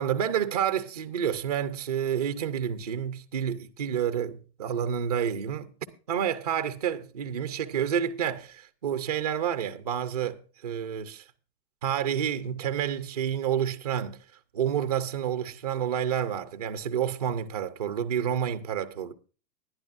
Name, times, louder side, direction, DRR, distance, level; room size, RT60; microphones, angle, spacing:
voice 1, 0.0-5.7 6.1-11.2 11.8-14.2 14.5-19.1, right 9 dB, 25° right, 0.6 m, -29 dB
19.5 x 11.5 x 2.5 m
hypercardioid pair, 180°, 50 cm